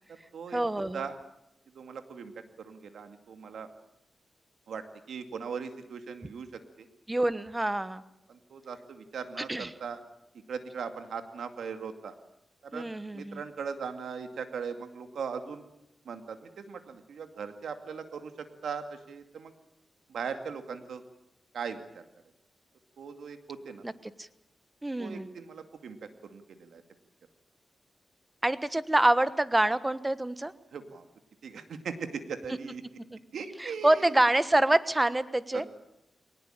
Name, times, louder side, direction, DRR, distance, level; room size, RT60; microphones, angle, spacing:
voice 1, 0.5-1.1 7.1-8.0 9.5-9.7 12.7-13.4 23.8-23.9 24.2-24.3 24.8-25.3 28.4-30.5 33.1-33.2 33.6-35.6, right 1 dB, 15° right, 14 dB, 1.2 m, -26 dB
voice 2, 1.7-2.3 2.6-3.7 4.7-6.5 6.8-6.9 8.3-10.0 10.5-12.1 12.6-12.9 13.1-15.6 16.1-18.3 18.6-19.5 20.1-21.0 21.5-22.0 23.0-23.8 25.0-26.0 26.2-26.8 30.7-31.0 31.4-32.8 33.3-34.1 35.5-35.7, right 6 dB, 90° right, 7 dB, 2.3 m, -39 dB
22.0 x 19.0 x 8.9 m, 0.83 s
cardioid pair, 80°, 0 cm